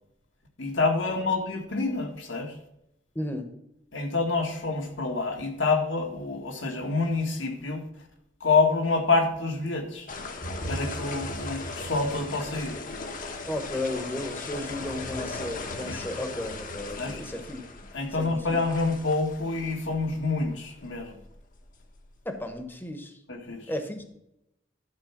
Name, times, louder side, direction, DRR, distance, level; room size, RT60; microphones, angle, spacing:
voice 1, 0.6-2.6 3.9-7.8 8.4-10.1 10.7-12.7 15.8-16.1 17.0-17.2 17.9-21.2 23.3-23.7, left 3 dB, 80° left, 3 dB, 1.9 m, -27 dB
sound 1, 10.1-22.6, left 2 dB, 45° left, 1.1 m, -38 dB
voice 2, 13.5-17.6 18.2-18.6 22.2-23.2 23.7-24.1, left 1 dB, 10° left, 6 dB, 1.1 m, -34 dB
12.0 x 4.7 x 6.0 m, 0.82 s
head